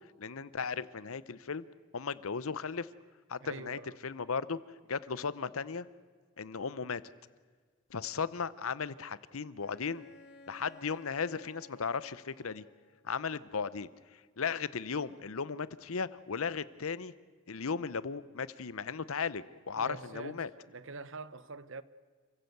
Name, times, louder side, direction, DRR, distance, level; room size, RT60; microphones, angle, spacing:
voice 1, 0.2-1.6 1.9-2.9 3.3-4.6 4.9-5.9 6.4-7.0 7.9-10.1 10.5-12.6 13.0-13.9 14.4-17.1 17.5-20.5, left 5 dB, 75° left, 0.8 m, -36 dB
voice 2, 3.4-3.9 19.7-21.8, right 3 dB, 60° right, 0.9 m, -45 dB
Bowed string instrument, 9.6-13.1, left 2 dB, 50° left, 2.3 m, -56 dB
28.5 x 15.5 x 8.0 m
head